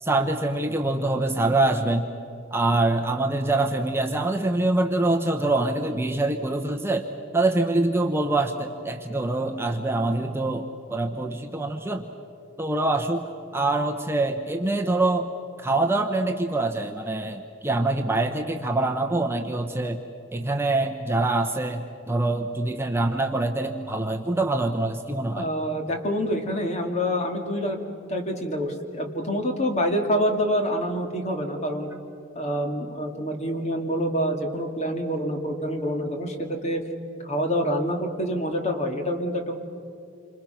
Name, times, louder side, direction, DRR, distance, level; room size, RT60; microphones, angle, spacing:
voice 1, 0.0-2.1 2.5-7.1 7.3-12.1 12.6-15.3 15.6-20.0 20.3-25.5, right 2 dB, 10° right, 4 dB, 0.9 m, -25 dB
voice 2, 25.3-31.9 32.4-36.8 37.2-39.5, equal, 35° left, 3 dB, 2.4 m, -27 dB
28.0 x 26.5 x 5.8 m, 2.7 s
head